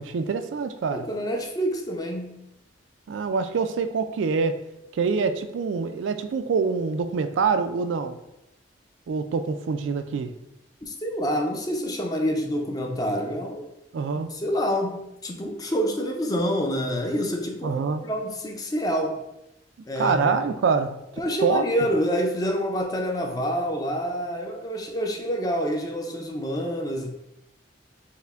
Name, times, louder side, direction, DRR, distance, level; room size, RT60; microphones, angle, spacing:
voice 1, 0.0-1.1 3.1-4.6 4.9-8.2 9.1-10.3 13.9-14.3 17.6-18.0 20.0-21.0 21.4-21.6, right 5 dB, 80° right, 9 dB, 0.3 m, -25 dB
voice 2, 0.9-2.4 10.8-13.7 14.3-19.2 19.9-20.3 21.2-27.1, equal, 20° left, 2 dB, 0.5 m, -27 dB
5.6 x 2.1 x 3.4 m, 0.87 s
head